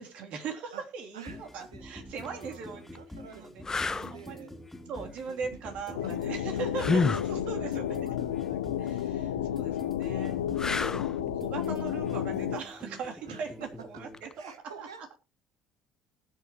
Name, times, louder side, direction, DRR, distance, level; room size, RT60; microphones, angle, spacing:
voice 1, 0.0-2.8 3.3-3.6 4.1-4.5 4.9-8.1 8.8-14.5 14.8-14.9, right 5 dB, 60° right, 2 dB, 3.3 m, -40 dB
voice 2, 1.1-1.4 1.7-1.8 2.2-5.6 5.9-6.2 6.5-9.1 9.6-9.9 10.3-10.9 13.3-13.7 13.9-14.0 14.3-15.1, right 6 dB, 85° right, 7 dB, 2.0 m, -50 dB
sound 1, 1.2-14.2, left 1 dB, 5° left, 3.0 m, -46 dB
sound 2, 2.1-2.3 2.9-3.0 3.6-4.1 6.8-7.3 10.6-11.2 14.1-14.3, left 4 dB, 25° left, 0.9 m, -28 dB
sound 3, 5.9-12.6, left 11 dB, 80° left, 0.7 m, -31 dB
20.0 x 8.2 x 3.1 m, 0.28 s
hypercardioid pair, 60°, 2 cm